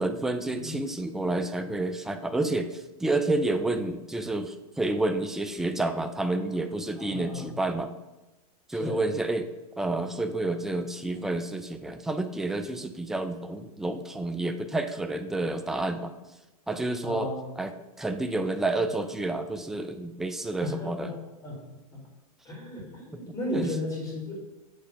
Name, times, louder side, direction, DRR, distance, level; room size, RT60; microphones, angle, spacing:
voice 1, 0.0-7.9 8.7-9.5 9.8-16.1 16.7-17.3 17.6-17.7 18.0-21.1 23.5-23.7, right 2 dB, ahead, 8 dB, 0.3 m, -29 dB
voice 2, 7.0-7.6 8.7-9.0 17.0-17.5 20.6-21.1 21.4-22.0 22.4-24.4, left 1 dB, 15° left, -3 dB, 2.0 m, -35 dB
6.4 x 3.2 x 5.0 m, 1.1 s
hypercardioid pair, 110°, 19 cm